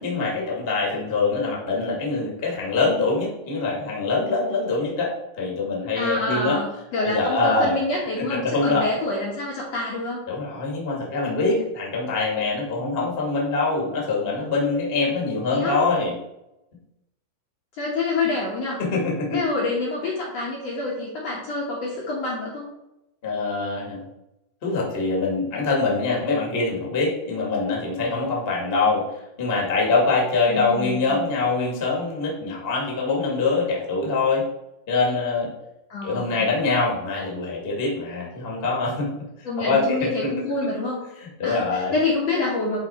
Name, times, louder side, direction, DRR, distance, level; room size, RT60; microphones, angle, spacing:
voice 1, 0.0-5.1 5.4-6.6 7.0-7.8 8.3-8.9 10.3-16.1 18.8-19.4 23.2-24.0 24.6-29.0 29.4-34.4 34.9-35.5 36.0-39.1 39.4-40.3 41.2-41.9, left 3 dB, 25° left, -3 dB, 1.3 m, -24 dB
voice 2, 6.0-10.2 15.5-15.8 17.8-18.8 19.3-22.6 30.5-31.2 35.9-36.5 39.4-41.0 41.4-41.6 41.9-42.8, left 2 dB, 60° left, -4 dB, 1.9 m, -27 dB
10.5 x 4.2 x 4.3 m, 0.89 s
omnidirectional pair, 4.5 m